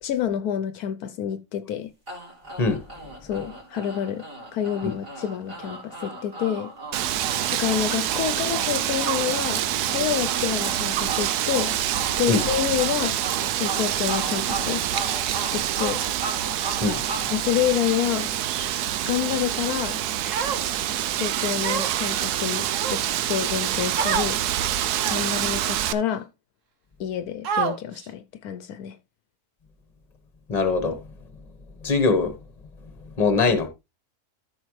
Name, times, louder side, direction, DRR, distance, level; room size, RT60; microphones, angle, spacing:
voice 1, 0.0-1.9 3.2-4.3 4.5-6.7 7.5-9.6 9.9-11.8 12.2-13.2 13.5-14.9 15.5-16.0 17.3-18.3 19.1-20.0 21.2-23.0 23.3-24.4 25.1-26.3 27.0-29.0, left 10 dB, 75° left, 1.1 m, -28 dB
sound 1, 2.1-18.3, right 3 dB, 35° right, 3.7 m, -36 dB
Wind, 6.9-25.9, right 11 dB, 80° right, 1.2 m, -26 dB
Human voice, 20.3-20.9 21.6-22.1 22.7-23.3 23.9-24.3 25.0-25.4 26.1-26.2 27.4-28.0, right 6 dB, 55° right, 1.3 m, -28 dB
voice 2, 30.5-31.0 31.8-32.3 33.2-33.7, left 4 dB, 25° left, 1.2 m, -21 dB
13.5 x 5.5 x 3.1 m
omnidirectional pair, 1.6 m